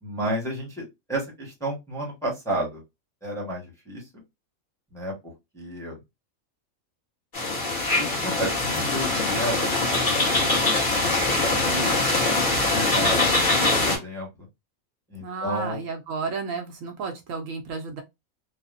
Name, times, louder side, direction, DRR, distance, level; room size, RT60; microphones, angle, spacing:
voice 1, 0.0-2.8 3.2-4.1 4.9-6.0 8.0-12.0 12.4-14.3 15.1-15.8, right 1 dB, ahead, 1.0 m, -32 dB
sound 1, 7.3-14.0, left 2 dB, 40° left, 1.3 m, -23 dB
voice 2, 15.2-18.0, right 4 dB, 75° right, 0.9 m, -32 dB
3.3 x 2.1 x 2.4 m
omnidirectional pair, 1.4 m